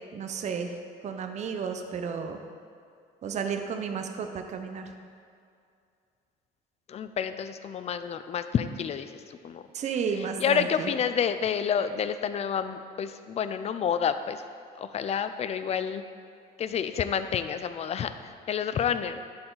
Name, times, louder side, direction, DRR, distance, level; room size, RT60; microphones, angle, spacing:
voice 1, 0.1-0.7 1.0-2.4 3.2-4.8 9.7-10.9, right 6 dB, 45° right, 6 dB, 0.6 m, -32 dB
voice 2, 6.9-9.6 10.4-14.4 14.8-16.0 16.6-19.2, left 7 dB, 40° left, 11 dB, 0.4 m, -29 dB
11.0 x 4.3 x 3.9 m, 2.3 s
cardioid pair, 110°, 17 cm